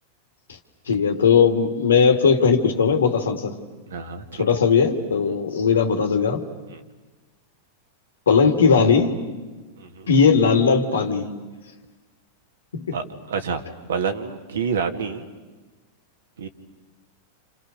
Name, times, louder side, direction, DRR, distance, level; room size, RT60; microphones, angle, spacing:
voice 1, 0.9-3.5 4.3-6.4 8.3-9.2 10.1-11.3 12.7-12.9, left 5 dB, 85° left, 6 dB, 2.3 m, -18 dB
voice 2, 3.9-4.6 6.7-6.8 9.8-10.1 12.9-13.6 13.9-15.3 16.4-16.5, right 6 dB, 80° right, 6 dB, 2.1 m, -28 dB
29.5 x 28.5 x 6.6 m, 1.3 s
hypercardioid pair, 100°, 0 cm